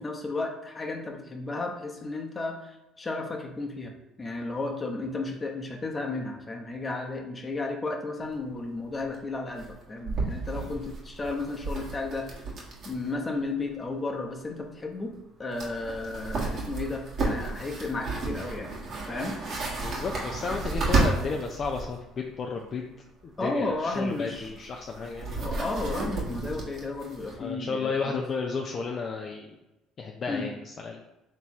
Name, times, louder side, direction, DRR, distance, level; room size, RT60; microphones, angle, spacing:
voice 1, 0.0-12.4 12.8-15.1 15.4-18.7 19.1-19.4 23.4-24.6 25.4-28.2 30.3-30.4, left 2 dB, 25° left, 1 dB, 0.9 m, -33 dB
sound 1, 8.3-8.4 8.6-8.7 9.0-9.2 9.6-13.1 13.4-13.5 15.2-15.3 15.5-21.9 23.7-27.4, right 3 dB, 50° right, 1.4 m, -32 dB
voice 2, 19.8-22.9 23.2-25.4 27.4-29.6 30.0-31.0, left 4 dB, 45° left, 1 dB, 0.5 m, -33 dB
3.4 x 3.0 x 4.3 m, 0.97 s
supercardioid pair, 85°, 0 cm